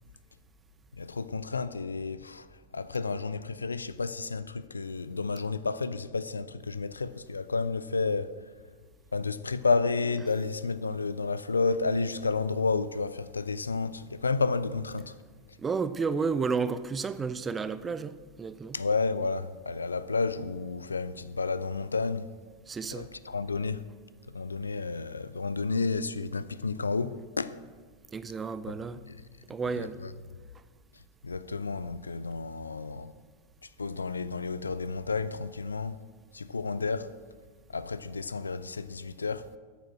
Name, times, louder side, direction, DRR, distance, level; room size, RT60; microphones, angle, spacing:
voice 1, 1.0-2.5 2.7-8.4 9.1-15.2 18.7-22.3 22.9-23.8 24.3-27.6 29.0-29.2 29.8-30.1 31.2-33.1 33.8-36.0 36.3-37.1 37.7-39.5, left 4 dB, 75° left, 0.3 m, -31 dB
voice 2, 15.6-18.8 22.7-23.1 28.1-29.0 29.5-30.0, right 5 dB, 15° right, 0.4 m, -31 dB
8.8 x 6.9 x 6.1 m
figure-of-eight pair, 90°, 0 cm